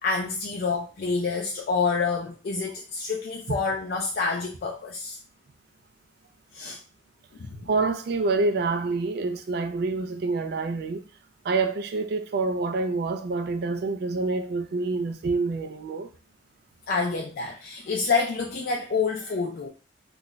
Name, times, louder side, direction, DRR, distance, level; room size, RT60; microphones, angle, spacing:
voice 1, 0.0-5.2 6.5-6.8 7.3-7.7 16.9-19.7, left 4 dB, 50° left, 0.3 m, -28 dB
voice 2, 7.7-11.0 11.4-16.1, right 3 dB, 55° right, 0.3 m, -27 dB
2.3 x 2.0 x 3.8 m
head